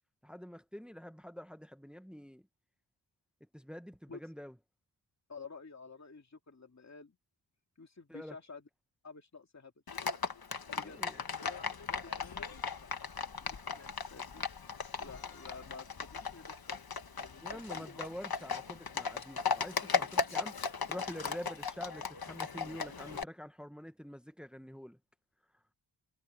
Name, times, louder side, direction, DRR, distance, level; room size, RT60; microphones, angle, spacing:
voice 1, 0.2-2.4 3.5-4.6 8.1-8.4 10.8-11.2 17.4-25.0, equal, ahead, 1.1 m, -46 dB
voice 2, 5.3-7.2 7.8-8.6 9.0-9.7 10.7-11.0 11.3-12.9 13.2-14.5 15.0-16.9 17.2-18.0, left 4 dB, 40° left, 2.6 m, -51 dB
Livestock farm animals working animals, 9.9-23.2, left 5 dB, 55° left, 1.4 m, -37 dB
wide cardioid pair, 95°, 44 cm